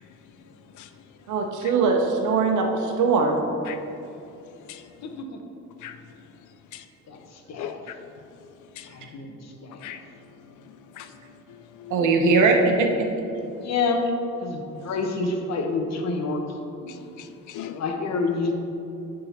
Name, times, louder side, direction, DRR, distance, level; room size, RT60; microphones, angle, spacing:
voice 1, 1.3-3.4 11.9-13.1, right 4 dB, 80° right, 3 dB, 1.0 m, -21 dB
voice 2, 5.0-5.4 7.1-7.2 7.5-7.8 9.1-9.3 9.6-9.8 13.6-14.0 14.4-16.4 16.8-16.9 17.8-18.5, left 3 dB, 60° left, 3 dB, 1.0 m, -27 dB
voice 3, 7.6-7.9 8.8-8.9 9.8-10.0 10.9-11.1 11.5-12.1 16.9-17.7, left 11 dB, 75° left, 10 dB, 0.5 m, -39 dB
9.9 x 3.8 x 4.3 m, 2.9 s
cardioid pair, 90°, 30 cm